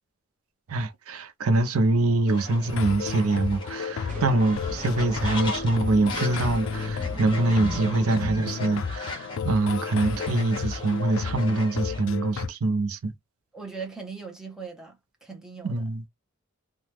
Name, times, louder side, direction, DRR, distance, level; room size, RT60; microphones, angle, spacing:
voice 1, 0.7-13.1 15.6-16.0, right 2 dB, 75° right, 0.5 m, -24 dB
Fowl, 2.3-12.0, left 2 dB, 20° left, 0.9 m, -39 dB
sound 1, 2.7-12.5, left 6 dB, 60° left, 0.3 m, -33 dB
sound 2, 4.1-9.2, right 1 dB, 35° right, 0.8 m, -39 dB
voice 2, 13.5-15.8, right 5 dB, 5° right, 0.6 m, -39 dB
2.9 x 2.2 x 3.2 m
head